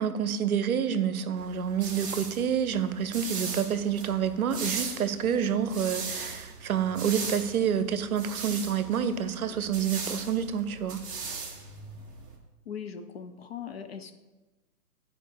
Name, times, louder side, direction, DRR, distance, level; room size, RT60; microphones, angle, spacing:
voice 1, 0.0-11.0, right 8 dB, 65° right, 0.7 m, -28 dB
sound 1, 1.4-12.4, right 4 dB, 15° right, 0.5 m, -39 dB
voice 2, 12.7-14.1, left 7 dB, 45° left, 0.5 m, -39 dB
9.8 x 4.7 x 3.2 m
hypercardioid pair, 135°, 47 cm